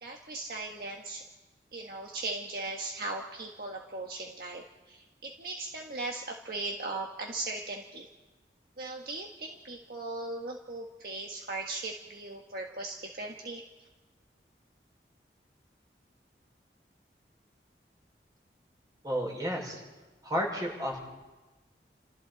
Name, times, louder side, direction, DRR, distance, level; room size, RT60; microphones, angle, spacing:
voice 1, 0.0-1.2 1.7-8.1 8.8-13.6, right 2 dB, 55° right, 0 dB, 1.6 m, -38 dB
voice 2, 19.0-19.8 20.2-21.0, equal, 20° right, -1 dB, 5.8 m, -32 dB
29.5 x 27.5 x 4.2 m, 1.2 s
head